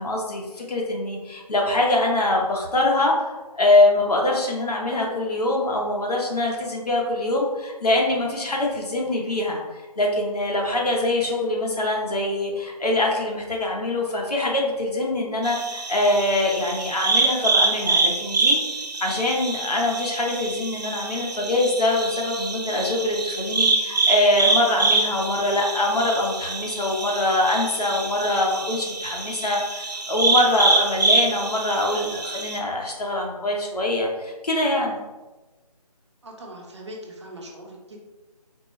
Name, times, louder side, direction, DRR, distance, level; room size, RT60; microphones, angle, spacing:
voice 1, 0.0-9.6 10.0-18.6 19.0-35.0, left 2 dB, 70° left, -1 dB, 1.0 m, -23 dB
sound 1, 15.4-32.6, right 3 dB, 85° right, 0.7 m, -25 dB
voice 2, 36.2-38.0, equal, 45° right, -1 dB, 0.7 m, -40 dB
4.3 x 2.0 x 3.1 m, 1.2 s
figure-of-eight pair, 165°, 21 cm